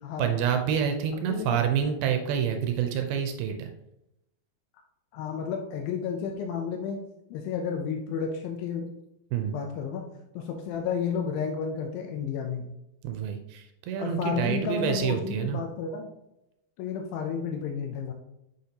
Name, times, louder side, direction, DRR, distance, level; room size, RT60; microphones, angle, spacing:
voice 1, 0.2-3.7 9.3-9.6 13.0-15.6, right 8 dB, 80° right, 5 dB, 2.4 m, -27 dB
voice 2, 1.3-1.6 5.1-7.0 7.3-8.9 9.5-10.0 10.4-12.7 14.0-16.1 16.8-18.1, left 6 dB, 80° left, 3 dB, 2.2 m, -31 dB
6.5 x 6.2 x 2.8 m, 0.85 s
omnidirectional pair, 4.5 m